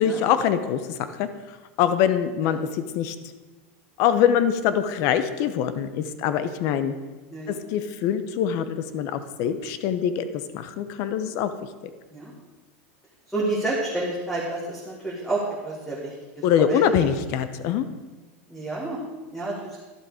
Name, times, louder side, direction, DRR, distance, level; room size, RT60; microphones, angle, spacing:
voice 1, 0.0-3.2 4.0-6.9 7.5-10.3 10.5-11.5 16.4-17.8, left 9 dB, 50° left, 11 dB, 0.8 m, -24 dB
voice 2, 13.3-17.1 18.5-19.0 19.3-19.8, right 2 dB, ahead, -6 dB, 1.8 m, -30 dB
12.0 x 7.4 x 4.9 m, 1.2 s
supercardioid pair, 150°, 7 cm